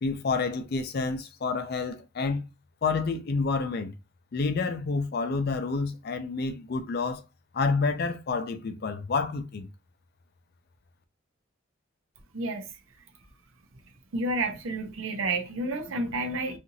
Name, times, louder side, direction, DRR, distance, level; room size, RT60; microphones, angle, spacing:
voice 1, 0.0-2.4 2.8-3.9 4.3-7.2 7.5-9.7, left 4 dB, 50° left, 0.4 m, -29 dB
voice 2, 12.3-12.7 14.1-16.6, right 2 dB, 80° right, 0.6 m, -30 dB
2.8 x 2.5 x 2.6 m
head